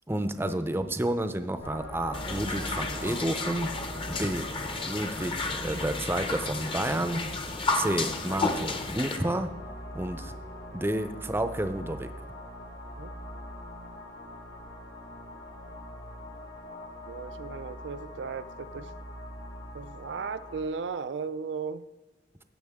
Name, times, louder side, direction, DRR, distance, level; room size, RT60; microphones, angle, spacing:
voice 1, 0.1-3.7 4.1-4.5 4.8-7.2 7.7-9.5 9.9-10.3 10.7-12.1, right 1 dB, 15° right, 9 dB, 0.5 m, -30 dB
sound 1, 1.6-20.7, left 1 dB, 70° left, 2.1 m, -42 dB
sound 2, 2.1-9.2, left 3 dB, 30° left, 0.8 m, -32 dB
voice 2, 16.7-18.9 19.7-21.9, right 5 dB, 85° right, 14 dB, 0.4 m, -36 dB
16.5 x 6.4 x 3.6 m, 1.2 s
head